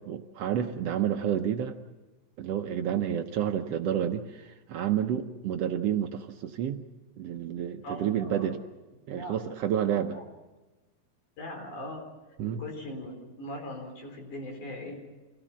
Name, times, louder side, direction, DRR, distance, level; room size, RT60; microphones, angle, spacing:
voice 1, 0.1-1.8 2.4-6.8 7.2-8.6 9.1-10.2 12.4-12.6, right 9 dB, 70° right, 6 dB, 1.6 m, -30 dB
voice 2, 7.8-8.5 9.1-9.4 10.1-10.2 11.4-12.0 12.6-14.9, left 1 dB, 80° left, 3 dB, 5.6 m, -40 dB
26.5 x 17.0 x 7.2 m, 1.2 s
omnidirectional pair, 3.5 m